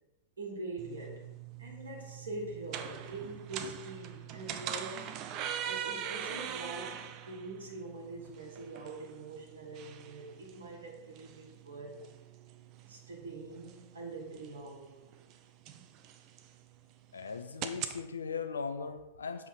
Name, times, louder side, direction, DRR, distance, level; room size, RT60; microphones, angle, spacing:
voice 1, 0.4-1.3 1.6-5.2 5.6-12.0 12.9-15.1, right 2 dB, 70° right, 1 dB, 1.5 m, -44 dB
sound 1, 0.8-18.0, right 9 dB, 40° right, 0.4 m, -43 dB
voice 2, 17.1-19.5, left 5 dB, 75° left, 8 dB, 0.5 m, -38 dB
7.1 x 3.5 x 4.5 m, 0.99 s
figure-of-eight pair, 90°, 0 cm